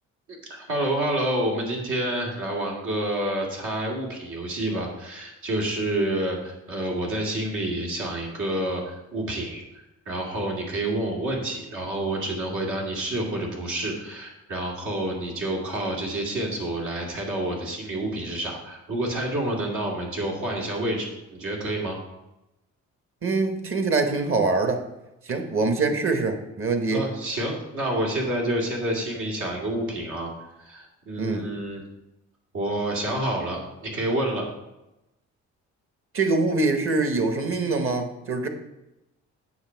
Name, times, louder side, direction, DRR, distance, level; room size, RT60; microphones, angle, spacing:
voice 1, 0.3-22.0 26.9-30.3 30.6-31.8 32.5-34.5, right 1 dB, 80° right, -2 dB, 2.6 m, -28 dB
voice 2, 23.2-24.8 25.2-27.0 31.2-31.5 36.1-38.5, right 3 dB, 45° right, 7 dB, 1.4 m, -24 dB
8.6 x 6.6 x 4.6 m, 0.94 s
cardioid pair, 90°, 30 cm